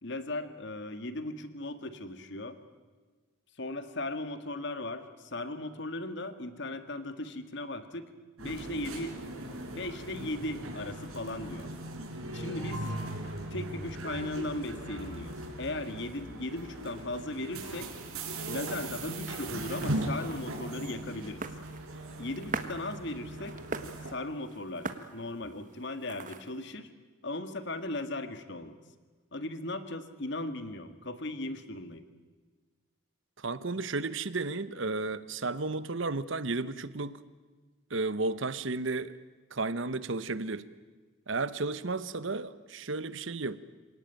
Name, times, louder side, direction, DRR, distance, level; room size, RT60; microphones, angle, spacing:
voice 1, 0.0-2.6 3.6-8.1 8.4-9.1 9.4-11.7 12.3-12.9 13.5-17.9 18.5-21.4 22.2-23.6 24.1-26.9 27.2-28.8 29.3-32.0, left 2 dB, 55° left, 10 dB, 1.8 m, -37 dB
sound 1, 8.4-24.1, right 1 dB, 85° right, 4.6 m, -39 dB
sound 2, 20.7-26.7, right 4 dB, 40° right, 1.4 m, -43 dB
voice 2, 33.4-37.2 37.9-39.1 39.5-40.7 41.3-43.6, right 3 dB, 60° right, 15 dB, 1.0 m, -33 dB
27.0 x 18.0 x 9.1 m, 1.4 s
head